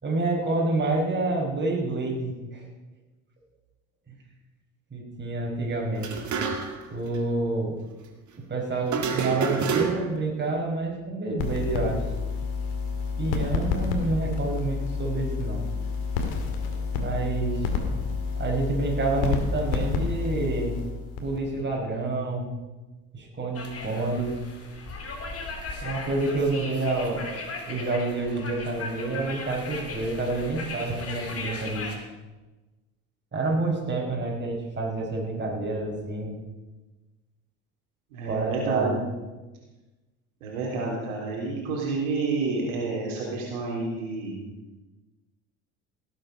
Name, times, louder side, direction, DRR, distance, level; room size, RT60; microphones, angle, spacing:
voice 1, 0.0-2.7 4.1-4.2 4.9-6.1 6.9-7.8 8.5-12.0 13.2-15.6 16.9-17.7 18.4-20.8 21.2-22.5 23.1-24.4 25.8-27.3 27.7-31.9 33.3-36.4 38.3-39.0, right 2 dB, 25° right, -1 dB, 5.1 m, -28 dB
sound 1, 6.0-6.9 7.1-7.2 8.9-10.2, right 6 dB, 45° right, 2.2 m, -28 dB
sound 2, 11.4-21.6, left 5 dB, 65° left, 2.4 m, -29 dB
sound 3, 23.5-31.9, left 3 dB, 35° left, 3.1 m, -37 dB
voice 2, 38.1-39.0 40.4-44.4, right 3 dB, 75° right, -3 dB, 3.7 m, -29 dB
17.5 x 8.8 x 5.4 m, 1.1 s
hypercardioid pair, 65°, 42 cm